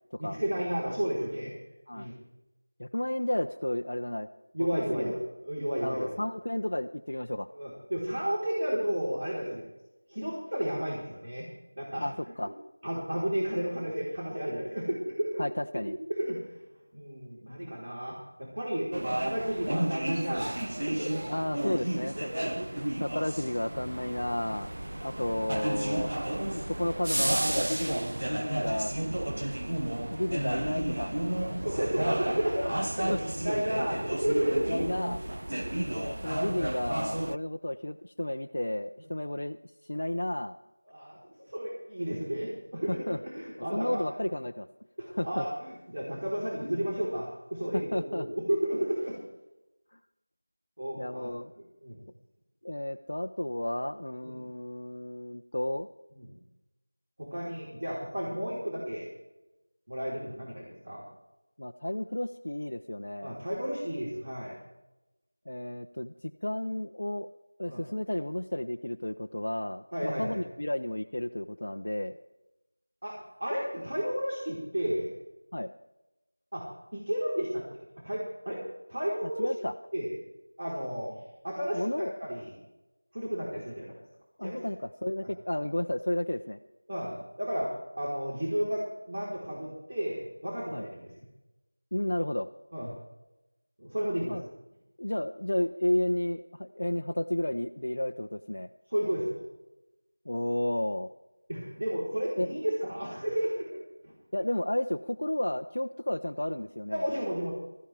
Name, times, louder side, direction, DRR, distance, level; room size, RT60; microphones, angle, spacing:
voice 1, 0.2-1.5 1.9-2.1 4.5-6.1 7.5-9.6 10.1-11.5 11.7-12.1 12.4-12.5 12.8-15.4 15.9-16.6 16.9-21.3 22.2-22.7 31.4-34.7 35.7-36.1 40.9-41.2 41.5-44.1 45.0-49.2 50.8-51.3 51.8-52.0 54.2-54.3 56.1-56.3 57.2-59.1 59.9-61.0 63.2-64.6 67.7-67.8 69.9-70.4 73.0-75.1 76.5-76.6 76.9-78.6 78.9-79.5 79.9-80.1 80.6-81.2 81.4-82.6 83.1-83.9 84.4-84.6 85.2-85.3 86.9-87.7 88.0-88.8 89.1-91.1 92.7-92.9 93.8-94.4 98.9-99.4 101.5-103.7 104.0-104.1 106.9-107.5, equal, 45° right, -5 dB, 4.1 m, -32 dB
voice 2, 2.8-4.3 4.6-5.2 5.8-7.5 12.0-12.5 15.4-15.9 21.3-22.3 23.0-24.7 25.0-26.1 26.5-29.0 30.1-31.1 33.1-33.2 34.7-35.2 36.0-39.6 39.8-40.6 42.9-43.2 43.7-44.7 45.1-45.5 47.7-48.3 49.9-50.0 51.0-51.5 52.6-55.9 61.6-63.4 65.5-66.1 66.4-67.3 67.6-72.2 75.5-75.7 79.4-79.7 81.7-82.1 84.4-86.6 90.7-90.9 91.9-92.5 94.3-94.4 95.0-98.7 100.3-101.1 102.4-102.5 104.3-107.0, left 1 dB, 65° left, 5 dB, 0.6 m, -32 dB
sound 1, 18.9-37.4, right 1 dB, 65° right, 0.4 m, -32 dB
19.5 x 14.0 x 3.5 m, 0.98 s
figure-of-eight pair, 175°, 0 cm